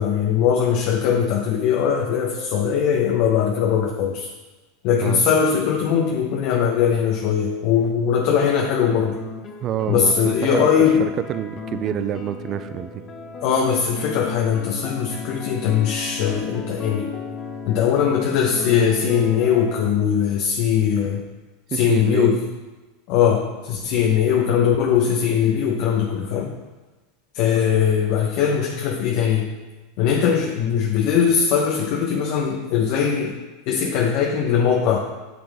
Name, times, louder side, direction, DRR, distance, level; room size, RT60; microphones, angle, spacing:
voice 1, 0.0-4.3 4.8-9.2 9.9-11.0 13.4-17.1 17.7-21.2 21.7-22.4 23.1-26.5 27.3-29.5 30.0-33.3 33.7-35.0, left 7 dB, 55° left, 0 dB, 1.0 m, -20 dB
sound 1, 9.2-19.9, left 5 dB, 25° left, 1.1 m, -35 dB
voice 2, 9.6-10.7 11.0-13.0 21.7-22.4, right 10 dB, 35° right, 11 dB, 0.5 m, -27 dB
9.1 x 7.8 x 3.5 m, 1.2 s
supercardioid pair, 130°, 0 cm